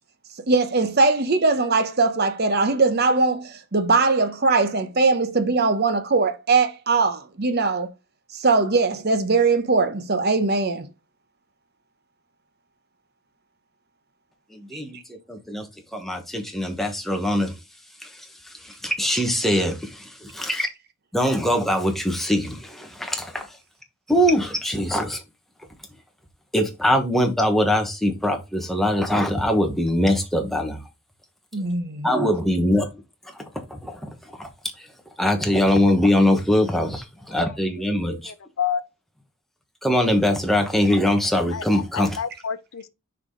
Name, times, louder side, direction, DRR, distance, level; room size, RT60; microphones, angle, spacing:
voice 1, 0.5-7.9 8.3-10.9 14.7-14.8 20.6-20.7 31.5-32.1, right 3 dB, 45° right, 0.9 m, -21 dB
voice 2, 14.5-15.0 15.3-15.7 15.9-17.5 18.6-20.7 21.1-23.5 24.1-25.2 26.5-30.8 32.0-32.9 33.7-34.1 34.4-34.5 35.2-38.3 39.8-42.2, left 1 dB, ahead, 1.2 m, -22 dB
voice 3, 38.3-38.8 41.5-42.9, left 7 dB, 60° left, 0.5 m, -29 dB
6.2 x 4.9 x 3.8 m
head